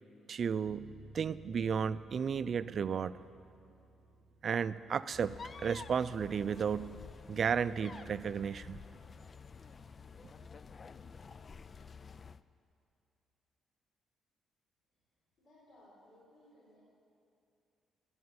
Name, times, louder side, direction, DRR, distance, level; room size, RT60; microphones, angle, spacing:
voice 1, 0.3-3.1 4.4-5.4 5.6-7.0 7.3-8.8, right 7 dB, 50° right, 15 dB, 0.4 m, -33 dB
Bass guitar, 0.6-10.4, equal, 20° left, 1.8 m, -61 dB
sound 1, 5.1-12.4, left 5 dB, 40° left, 0.4 m, -50 dB
voice 2, 15.4-16.8, left 1 dB, 55° left, -7 dB, 4.9 m, -61 dB
14.0 x 9.6 x 9.6 m, 2.6 s
cardioid pair, 90°, 0 cm